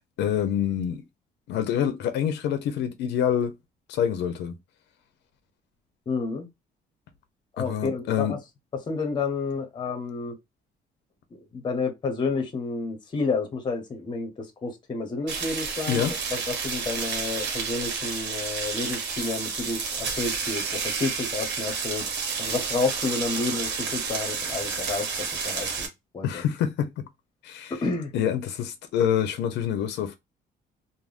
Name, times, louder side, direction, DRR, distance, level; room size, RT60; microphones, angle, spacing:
voice 1, 0.2-1.0 1.5-3.6 3.9-4.5 7.6-8.4 15.9-16.1 26.2-27.0 27.4-27.7 28.1-30.2, left 9 dB, 85° left, 0.6 m, -26 dB
voice 2, 6.1-6.5 7.6-8.4 8.7-10.3 11.3-22.1 22.4-25.9 26.1-26.4 27.7-28.1, left 4 dB, 25° left, 0.7 m, -30 dB
sound 1, 15.3-25.9, right 5 dB, 85° right, 1.0 m, -30 dB
3.4 x 2.1 x 2.4 m
cardioid pair, 170°, 18 cm